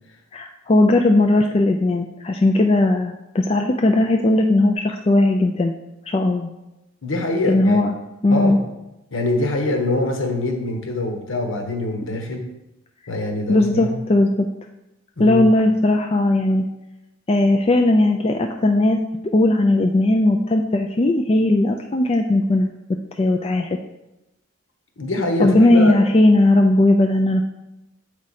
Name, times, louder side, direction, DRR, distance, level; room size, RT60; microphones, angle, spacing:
voice 1, 0.3-5.7 6.1-6.5 7.5-7.9 8.2-8.6 13.5-14.5 15.2-16.7 17.3-19.0 19.3-22.7 23.2-23.8 25.4-27.5, left 2 dB, 25° left, 3 dB, 0.3 m, -17 dB
voice 2, 7.0-7.8 8.3-8.6 9.1-12.4 13.1-14.0 15.2-15.4 25.0-26.0, left 2 dB, 70° left, 3 dB, 1.1 m, -24 dB
7.6 x 4.7 x 4.1 m, 0.93 s
head